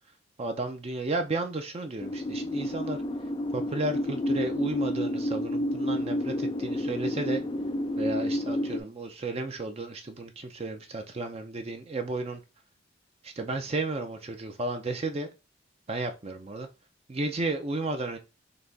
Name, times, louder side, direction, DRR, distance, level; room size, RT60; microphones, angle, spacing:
voice 1, 0.4-3.0 3.5-7.4 8.0-12.4 13.2-15.3 15.9-16.7 17.1-18.2, right 2 dB, 30° right, 0.5 m, -33 dB
sound 1, 2.0-8.8, left 1 dB, 25° left, 0.3 m, -30 dB
4.0 x 3.0 x 3.4 m
head